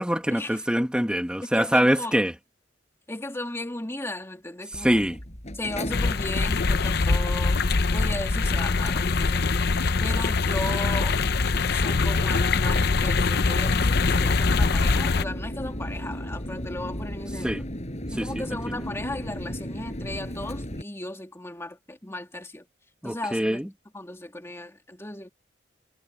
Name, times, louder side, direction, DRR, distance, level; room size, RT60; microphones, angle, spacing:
voice 1, 0.0-2.3 4.7-5.2 17.4-17.6 18.2-18.9 23.0-23.7, equal, 5° right, 1.7 m, -24 dB
voice 2, 1.5-2.2 3.1-5.0 5.5-7.6 7.9-9.4 10.0-11.2 11.7-17.5 18.1-22.7 23.0-23.6 23.9-25.3, left 1 dB, 15° left, 2.2 m, -36 dB
Mechanical fan, 4.7-20.8, equal, 40° left, 6.5 m, -37 dB
sound 1, 5.9-15.2, left 4 dB, 60° left, 0.7 m, -23 dB
head